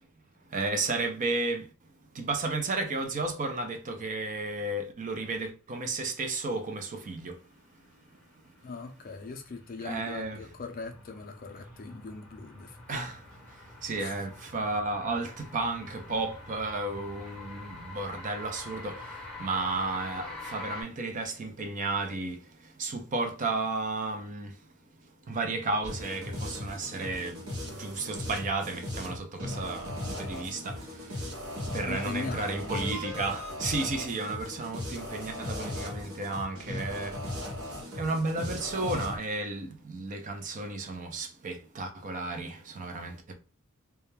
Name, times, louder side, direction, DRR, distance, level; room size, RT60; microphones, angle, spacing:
voice 1, 0.5-1.7 2.2-7.3 9.8-10.4 12.9-13.2 13.8-19.0 19.4-22.4 22.8-24.5 25.3-27.4 27.7-30.8 31.7-37.2 38.0-43.3, right 3 dB, 35° right, 0.4 m, -33 dB
sound 1, 8.0-20.8, left 2 dB, 5° left, 0.7 m, -46 dB
voice 2, 8.6-13.1 14.0-14.2 31.8-32.9, left 4 dB, 40° left, 0.4 m, -40 dB
sound 2, 25.8-39.2, left 1 dB, 70° right, 0.9 m, -37 dB
2.3 x 2.1 x 3.0 m
head